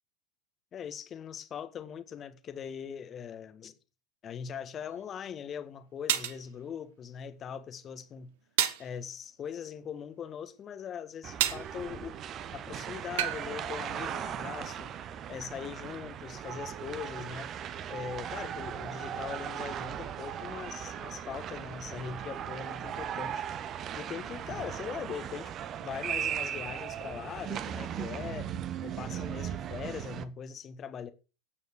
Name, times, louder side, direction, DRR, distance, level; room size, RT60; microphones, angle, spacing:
voice 1, 0.7-3.7 4.2-8.3 8.8-12.2 12.5-14.9 15.3-17.5 17.9-23.4 24.0-25.5 25.8-28.5 28.8-31.1, left 7 dB, 25° left, 1.7 m, -41 dB
sound 1, 5.0-5.1 6.1-6.4 8.6-8.9 11.4-11.7 13.2-13.4, right 12 dB, 55° right, 1.5 m, -28 dB
sound 2, 11.2-30.2, right 9 dB, 30° right, 1.2 m, -38 dB
13.5 x 9.2 x 4.9 m
figure-of-eight pair, 90°, 0 cm